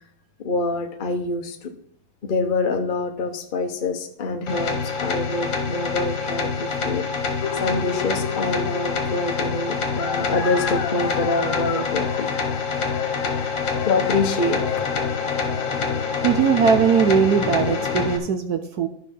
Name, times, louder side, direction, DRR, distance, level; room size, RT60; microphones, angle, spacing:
voice 1, 0.4-1.7 2.2-7.1 7.6-12.3 13.9-14.6, left 3 dB, 40° left, 3 dB, 0.8 m, -25 dB
sound 1, 4.5-18.2, left 4 dB, 55° left, 1.7 m, -27 dB
sound 2, 7.4-18.1, left 10 dB, 90° left, 1.5 m, -32 dB
voice 2, 16.2-18.9, right 7 dB, 65° right, 7 dB, 1.0 m, -20 dB
12.0 x 4.6 x 5.4 m, 0.68 s
omnidirectional pair, 2.3 m